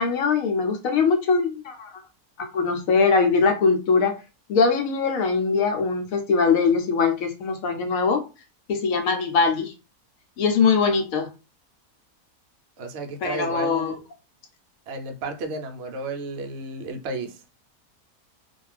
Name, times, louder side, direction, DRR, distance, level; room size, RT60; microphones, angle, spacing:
voice 1, 0.0-1.9 2.4-4.2 4.5-8.2 8.7-9.7 10.4-11.3 13.2-13.9, left 5 dB, 70° left, 0.9 m, -21 dB
voice 2, 12.8-14.0 14.9-17.4, right 3 dB, 70° right, 0.6 m, -33 dB
2.5 x 2.3 x 3.2 m
omnidirectional pair, 1.7 m